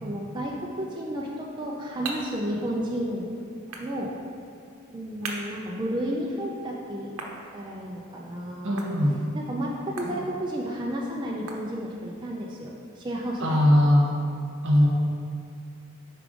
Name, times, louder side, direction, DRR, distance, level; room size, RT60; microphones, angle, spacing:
voice 1, 0.0-3.3 3.8-4.1 4.9-8.8 9.3-13.5, equal, 20° right, -4 dB, 0.5 m, -32 dB
sound 1, 1.3-12.2, right 3 dB, 80° right, 0.8 m, -44 dB
voice 2, 8.6-9.2 10.0-10.2 13.4-14.1 14.6-14.9, left 1 dB, 65° right, -2 dB, 1.2 m, -20 dB
5.3 x 4.7 x 5.0 m, 2.4 s
head